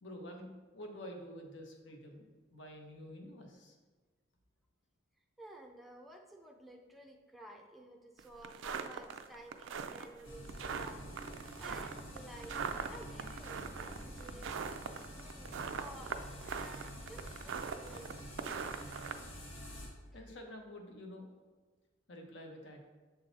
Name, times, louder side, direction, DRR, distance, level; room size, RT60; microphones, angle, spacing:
voice 1, 0.0-3.8 20.1-21.3 22.1-22.9, equal, 65° left, 2 dB, 1.0 m, -49 dB
voice 2, 5.4-14.5 15.1-18.2, right 1 dB, ahead, 1 dB, 0.5 m, -54 dB
sound 1, 8.2-19.2, right 6 dB, 70° right, 0.4 m, -41 dB
sound 2, 10.2-19.9, equal, 80° left, 1.4 m, -48 dB
7.0 x 3.8 x 4.1 m, 1.4 s
head